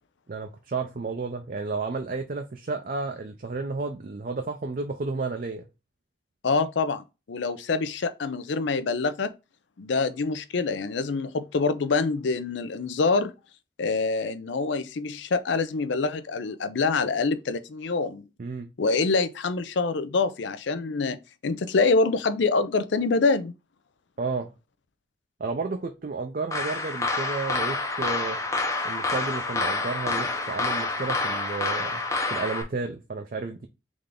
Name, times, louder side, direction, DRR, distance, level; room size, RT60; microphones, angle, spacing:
voice 1, 0.3-5.6 18.4-18.7 24.2-24.5 25.4-28.4 28.8-32.0 32.3-33.7, right 4 dB, 45° right, 0.4 m, -32 dB
voice 2, 6.4-9.3 9.8-13.3 13.8-18.2 18.8-21.2 21.4-23.5, left 4 dB, 70° left, 0.5 m, -25 dB
sound 1, 26.5-32.6, left 3 dB, 15° left, 0.6 m, -28 dB
3.7 x 3.4 x 3.7 m
head